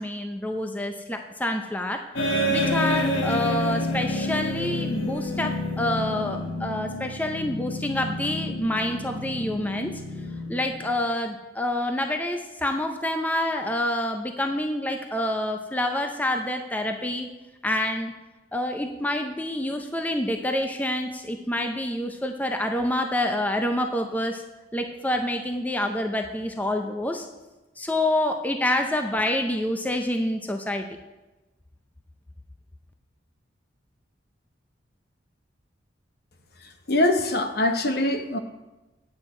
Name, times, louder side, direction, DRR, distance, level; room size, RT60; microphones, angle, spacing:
voice 1, 0.0-2.0 2.3-9.9 10.5-17.3 17.6-18.1 18.5-24.4 24.7-27.3 27.8-30.8, left 1 dB, 10° left, 0.5 m, -27 dB
sound 1, 2.2-11.1, left 1 dB, 85° left, 1.3 m, -29 dB
voice 2, 36.9-38.4, left 1 dB, 55° left, 0.8 m, -23 dB
9.7 x 8.1 x 4.3 m
head